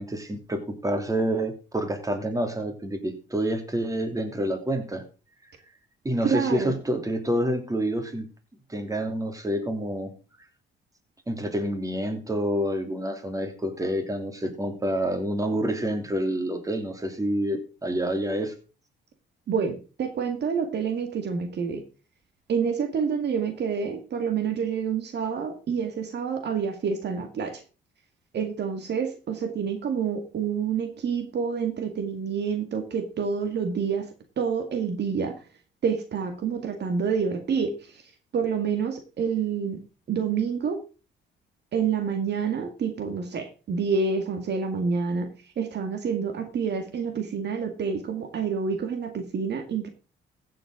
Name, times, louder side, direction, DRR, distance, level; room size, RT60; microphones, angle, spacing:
voice 1, 0.0-5.1 6.0-8.3 8.7-10.1 11.3-18.5, right 1 dB, 15° right, 6 dB, 2.9 m, -28 dB
voice 2, 6.2-6.7 19.5-21.8 22.5-27.6 28.3-34.1 34.4-35.4 35.8-38.0 38.3-39.8 40.1-40.8 41.7-49.9, right 6 dB, 60° right, 7 dB, 1.9 m, -28 dB
15.5 x 7.7 x 3.7 m, 0.33 s
cardioid pair, 90°, 20 cm